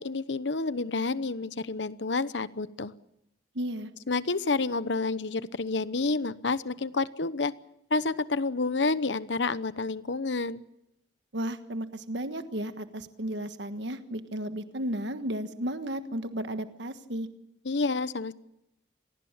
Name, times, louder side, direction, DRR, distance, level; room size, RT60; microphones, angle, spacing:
voice 1, 0.0-2.9 4.1-7.5 7.9-10.6 17.6-18.3, left 3 dB, 80° left, 15 dB, 1.0 m, -29 dB
voice 2, 3.5-3.9 11.3-17.3, right 1 dB, 75° right, 9 dB, 1.5 m, -34 dB
26.0 x 19.0 x 7.4 m, 0.85 s
head